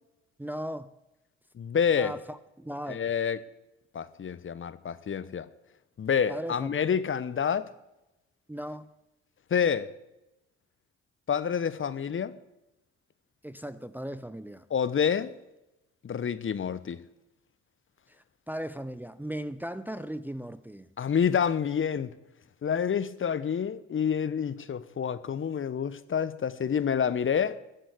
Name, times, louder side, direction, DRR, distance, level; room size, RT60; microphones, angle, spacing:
voice 1, 0.4-0.9 1.9-3.0 6.3-6.8 8.5-8.9 13.4-14.7 18.1-20.9, equal, 5° right, 0.7 m, -37 dB
voice 2, 1.6-2.1 2.9-3.4 3.9-5.5 6.0-7.7 9.5-9.9 11.3-12.3 14.7-15.3 16.0-17.0 21.0-22.1 22.6-27.6, left 7 dB, 40° left, 1.1 m, -28 dB
13.5 x 7.9 x 8.2 m
hypercardioid pair, 50°, 31 cm